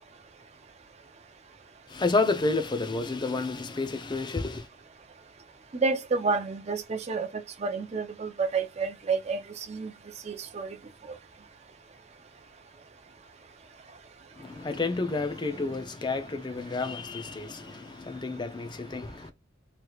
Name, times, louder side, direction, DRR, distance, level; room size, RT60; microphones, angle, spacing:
voice 1, 1.9-4.7 14.4-19.3, left 3 dB, 25° left, 0.5 m, -30 dB
voice 2, 5.7-9.9 10.2-10.8, right 4 dB, 35° right, 0.5 m, -30 dB
3.2 x 3.0 x 2.3 m
head